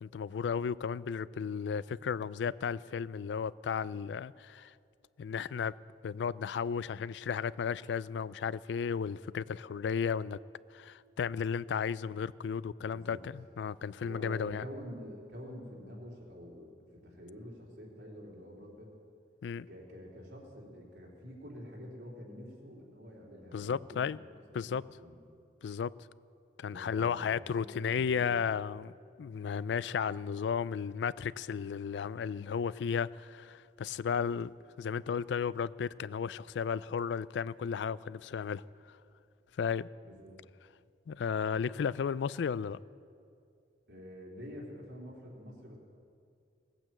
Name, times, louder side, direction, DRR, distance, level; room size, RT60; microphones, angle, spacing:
voice 1, 0.0-4.7 5.2-5.8 6.0-10.4 10.7-14.6 19.4-19.7 23.5-24.2 24.5-24.8 25.6-25.9 26.6-28.9 29.2-34.5 34.8-38.6 38.9-39.0 39.6-39.9 41.1-42.8, left 6 dB, 85° left, 19 dB, 0.3 m, -34 dB
voice 2, 12.9-13.2 14.0-19.0 19.7-24.1 24.5-25.1 26.7-28.5 40.0-40.4 43.9-45.8, equal, 80° right, -3 dB, 3.4 m, -47 dB
18.0 x 9.0 x 7.7 m, 2.4 s
head